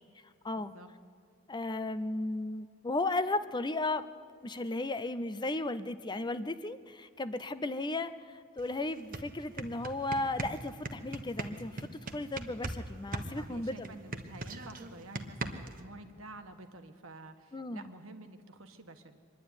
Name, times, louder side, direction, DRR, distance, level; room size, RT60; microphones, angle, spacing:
voice 1, 0.6-0.9 13.4-19.2, right 2 dB, 70° right, 7 dB, 1.4 m, -50 dB
voice 2, 1.5-4.0 4.4-13.9 17.5-17.8, left 2 dB, 20° left, 13 dB, 0.5 m, -35 dB
sound 1, 8.6-8.7 9.0-12.8 13.1-15.8, right 2 dB, 40° right, 1.2 m, -39 dB
24.5 x 11.0 x 9.7 m, 2.2 s
head